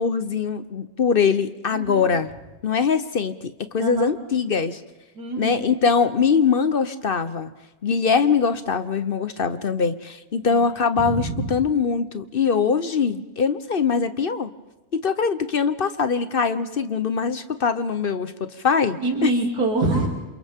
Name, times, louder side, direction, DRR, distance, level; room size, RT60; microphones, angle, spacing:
voice 1, 0.0-2.3 2.6-3.3 3.7-4.8 5.4-7.5 7.8-14.5 14.9-19.3, left 5 dB, 45° left, 11 dB, 0.9 m, -22 dB
voice 2, 1.7-2.1 3.8-4.1 5.2-5.6 10.5-10.6 11.0-11.5 19.0-20.1, right 2 dB, 85° right, 0 dB, 3.3 m, -25 dB
28.5 x 28.0 x 3.6 m, 1.1 s
omnidirectional pair, 1.6 m